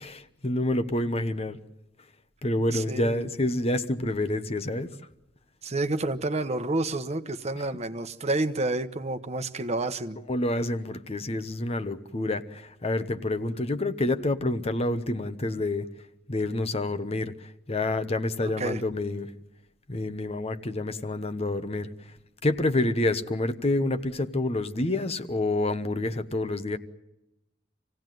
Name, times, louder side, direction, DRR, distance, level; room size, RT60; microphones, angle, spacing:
voice 1, 0.0-1.6 2.4-4.9 10.3-15.9 16.3-19.3 19.9-21.9 22.4-26.8, left 2 dB, 35° left, 1.0 m, -28 dB
voice 2, 2.7-3.2 5.6-10.2 18.4-18.8, right 2 dB, 35° right, 1.1 m, -29 dB
27.0 x 17.0 x 9.3 m
head